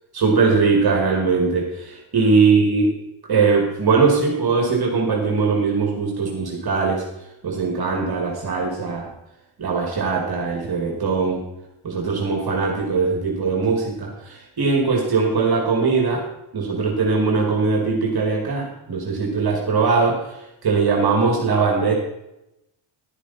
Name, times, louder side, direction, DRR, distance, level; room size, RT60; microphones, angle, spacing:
voice 1, 0.1-2.9 3.3-7.0 7.4-9.1 9.6-11.4 11.8-16.2 16.5-21.9, right 4 dB, 45° right, 0 dB, 2.2 m, -20 dB
11.0 x 10.0 x 4.2 m, 0.90 s
cardioid pair, 75°, 50 cm